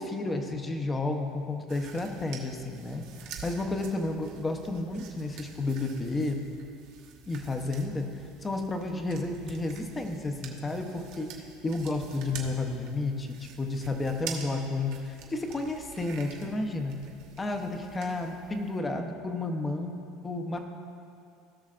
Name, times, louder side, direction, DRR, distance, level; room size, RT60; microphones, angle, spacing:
voice 1, 0.0-3.0 3.4-6.4 7.3-11.3 11.6-17.0 17.4-20.6, left 2 dB, 15° left, 4 dB, 0.7 m, -32 dB
sound 1, 1.7-18.8, right 7 dB, 60° right, 1.2 m, -47 dB
17.0 x 6.3 x 2.5 m, 2.6 s
cardioid pair, 145°, 0 cm